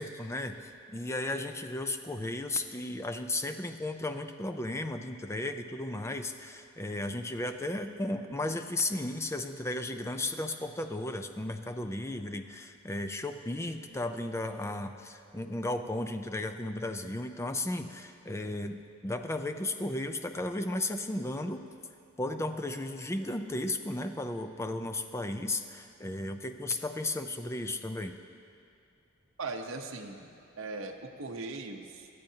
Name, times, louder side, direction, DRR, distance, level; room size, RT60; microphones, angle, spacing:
voice 1, 0.0-21.6 22.2-28.2, left 2 dB, 15° left, 7 dB, 0.4 m, -35 dB
voice 2, 29.4-30.3 30.6-32.1, right 3 dB, 70° right, 3 dB, 0.9 m, -39 dB
19.5 x 12.5 x 2.8 m, 2.6 s
head